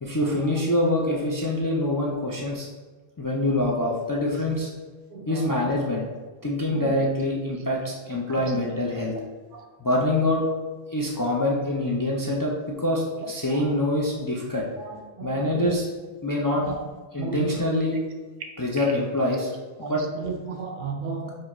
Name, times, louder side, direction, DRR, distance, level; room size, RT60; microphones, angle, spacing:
voice 1, 0.0-2.7 3.2-4.7 5.3-6.0 6.4-9.1 9.8-10.4 10.9-14.7 15.2-15.9 16.2-16.6 17.1-18.0 18.6-19.5 19.8-20.0, left 1 dB, 30° left, -3 dB, 0.4 m, -25 dB
voice 2, 5.1-5.5 6.7-6.8 8.4-8.5 9.5-9.6 14.9-15.8 16.5-16.7 17.2-17.5 19.8-21.3, right 5 dB, 65° right, 3 dB, 0.7 m, -34 dB
4.7 x 2.5 x 4.2 m, 1.3 s
omnidirectional pair, 1.0 m